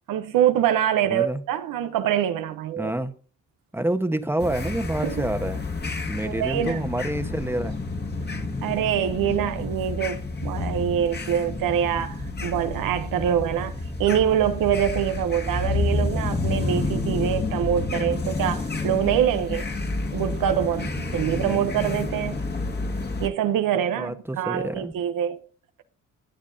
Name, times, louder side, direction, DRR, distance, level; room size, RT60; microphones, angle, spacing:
voice 1, 0.1-2.9 5.0-5.2 6.2-6.8 8.6-19.7 20.1-22.4 23.2-25.4, right 10 dB, 85° right, 0.8 m, -25 dB
voice 2, 1.0-1.4 2.8-3.1 3.7-5.6 6.1-7.8 21.2-21.7 24.0-24.9, right 1 dB, 5° right, 1.1 m, -28 dB
sound 1, 4.4-23.3, left 3 dB, 30° left, 1.8 m, -29 dB
20.5 x 7.3 x 2.7 m
cardioid pair, 70°, 32 cm